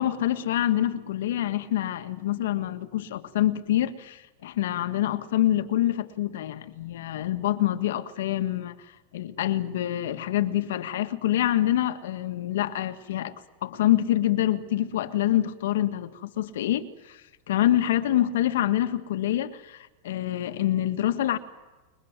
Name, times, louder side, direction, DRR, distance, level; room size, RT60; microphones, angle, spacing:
voice 1, 0.0-13.3 13.6-21.4, left 13 dB, 75° left, 1.8 m, -26 dB
29.5 x 23.0 x 7.6 m
supercardioid pair, 170°, 0 cm